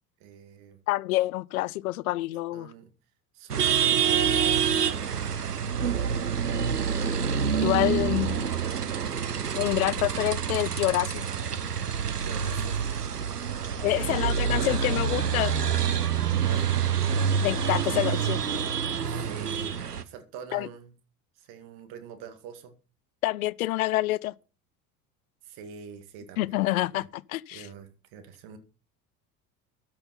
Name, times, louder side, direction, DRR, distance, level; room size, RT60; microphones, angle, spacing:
voice 1, 0.2-0.8 2.5-2.9 3.3-5.3 12.2-12.8 13.5-15.0 16.3-16.8 19.1-20.9 21.4-22.7 25.4-27.1 27.5-28.6, right 6 dB, 55° right, 2.1 m, -45 dB
voice 2, 0.9-2.7 7.6-8.5 9.5-11.3 13.8-15.5 17.4-18.4 20.5-20.7 23.2-24.3 26.4-27.7, left 17 dB, 65° left, 0.5 m, -27 dB
sound 1, 3.5-20.0, right 7 dB, 85° right, 0.8 m, -27 dB
13.0 x 5.7 x 5.6 m
figure-of-eight pair, 65°, 46 cm